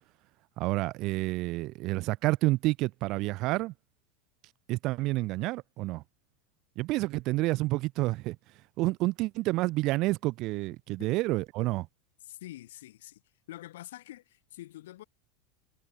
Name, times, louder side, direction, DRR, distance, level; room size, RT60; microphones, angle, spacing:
voice 1, 0.6-3.7 4.7-6.0 6.8-8.4 8.8-11.9, right 20 dB, 35° right, 0.3 m, -29 dB
voice 2, 12.2-13.2 13.5-15.0, left 15 dB, 75° left, 3.3 m, -46 dB
supercardioid pair, 180°, 0 cm